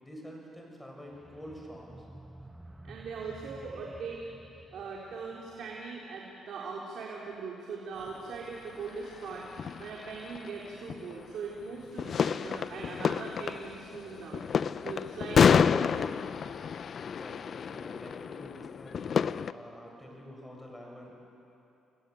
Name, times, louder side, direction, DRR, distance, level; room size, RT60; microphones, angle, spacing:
voice 1, 0.0-2.1 17.0-21.2, equal, 5° left, 0 dB, 7.6 m, -47 dB
sound 1, 1.1-6.1, right 1 dB, 10° right, 1.2 m, -51 dB
voice 2, 2.8-4.2 4.7-14.4 14.8-16.2, right 4 dB, 70° right, -3 dB, 3.7 m, -41 dB
sound 2, 8.1-8.2 8.8-11.2 11.9-19.5, left 7 dB, 55° left, 0.6 m, -29 dB
29.5 x 20.5 x 8.7 m, 2.8 s
cardioid pair, 90°, 0 cm